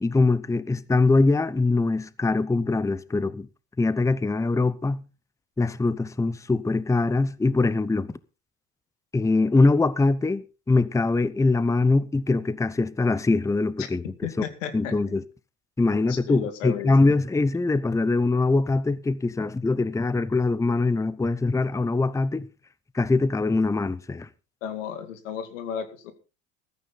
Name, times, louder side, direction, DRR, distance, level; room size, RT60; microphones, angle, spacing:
voice 1, 0.0-3.5 3.8-5.0 5.6-8.2 9.1-14.0 14.7-15.2 15.8-22.5 22.9-24.3, left 3 dB, 10° left, 0.8 m, -23 dB
voice 2, 14.2-14.9 15.9-16.9 24.6-26.1, left 9 dB, 90° left, 2.4 m, -33 dB
15.0 x 13.0 x 4.0 m
supercardioid pair, 90°, 37 cm